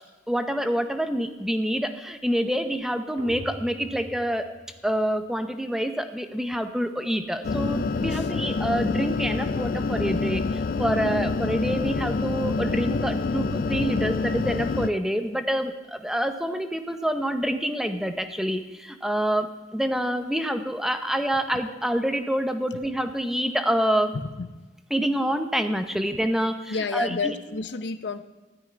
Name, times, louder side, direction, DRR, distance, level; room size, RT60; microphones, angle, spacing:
voice 1, 0.3-4.5 4.8-24.1 24.9-27.4, equal, 5° right, 7 dB, 0.8 m, -27 dB
sound 1, 3.2-5.3, equal, 50° right, 2.2 m, -42 dB
sound 2, 7.4-14.9, left 3 dB, 50° left, 0.4 m, -27 dB
voice 2, 24.1-24.5 26.7-28.2, left 4 dB, 75° left, 11 dB, 0.7 m, -30 dB
13.0 x 6.3 x 9.7 m, 1.2 s
head